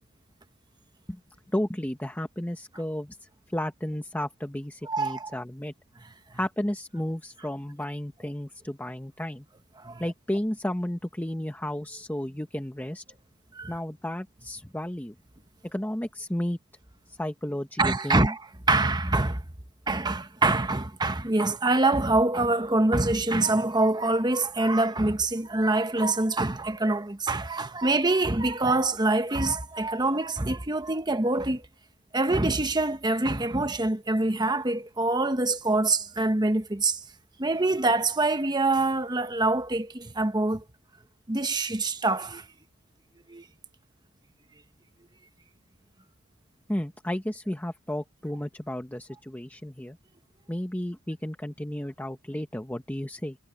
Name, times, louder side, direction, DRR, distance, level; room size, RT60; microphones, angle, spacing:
voice 1, 1.5-5.7 6.3-9.4 10.0-13.0 13.7-15.1 15.6-16.6 17.1-18.3 46.7-50.0 50.5-53.4, left 1 dB, 10° left, 1.1 m, -33 dB
voice 2, 4.8-5.3 6.0-6.4 9.8-10.0 13.5-13.7 17.8-19.4 19.9-31.7 32.1-37.0 37.4-40.6 41.3-42.5 43.3-43.4, right 2 dB, 20° right, 1.1 m, -25 dB
head